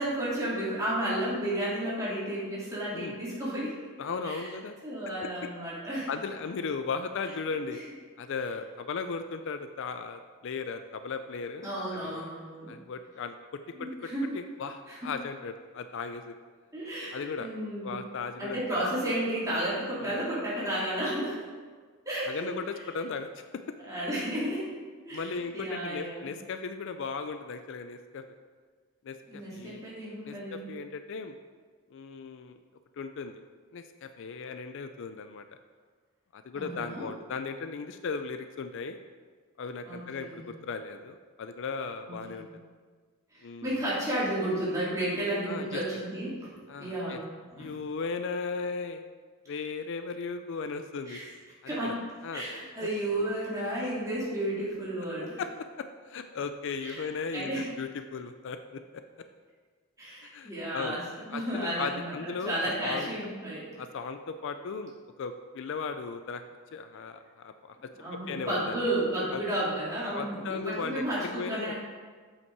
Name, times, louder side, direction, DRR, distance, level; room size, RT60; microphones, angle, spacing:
voice 1, 0.0-3.7 4.2-4.5 4.8-6.1 7.7-7.8 11.6-12.8 13.7-14.3 14.9-15.1 16.7-18.0 18.4-21.4 22.0-22.3 23.9-24.7 25.0-26.3 29.3-30.7 36.5-37.1 39.8-40.4 42.1-42.4 43.3-46.5 46.8-47.2 47.5-47.7 49.5-49.6 51.1-51.2 51.7-52.0 52.3-55.4 56.8-57.0 57.3-57.7 60.0-63.7 68.0-71.8, right 1 dB, 15° right, -8 dB, 2.6 m, -32 dB
voice 2, 4.0-4.8 6.1-7.8 8.2-12.3 12.7-13.9 14.3-16.4 17.1-17.5 17.8-18.8 20.0-20.2 22.3-23.3 25.1-28.2 29.0-29.8 30.2-31.4 31.9-32.6 33.0-33.4 33.7-35.4 36.3-39.0 39.6-42.5 43.4-43.8 45.5-45.8 46.7-47.2 47.6-49.0 49.5-51.2 51.6-52.0 52.2-52.4 55.4-55.5 55.8-59.0 60.2-61.0 61.3-63.1 63.8-66.4 66.7-67.8 68.3-68.9 69.3-69.4 70.1-71.7, left 5 dB, 55° left, 8 dB, 0.4 m, -37 dB
8.1 x 5.7 x 4.6 m, 1.5 s
head